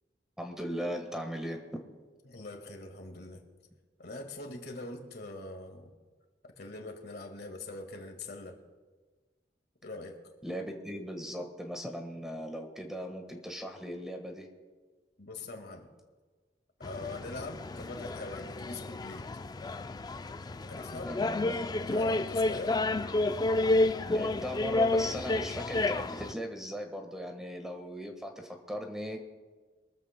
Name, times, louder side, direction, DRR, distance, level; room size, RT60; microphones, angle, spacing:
voice 1, 0.4-1.6 10.4-14.5 21.1-21.6 24.1-29.2, equal, 5° right, 3 dB, 1.4 m, -38 dB
voice 2, 2.3-3.4 4.0-5.9 6.5-8.6 9.8-10.2 15.2-15.9 16.8-19.3 20.7-21.1 21.9-22.8, left 2 dB, 65° left, 4 dB, 1.8 m, -42 dB
sound 1, 16.8-26.3, left 2 dB, 25° left, 0.3 m, -30 dB
24.0 x 14.0 x 2.2 m, 1.4 s
head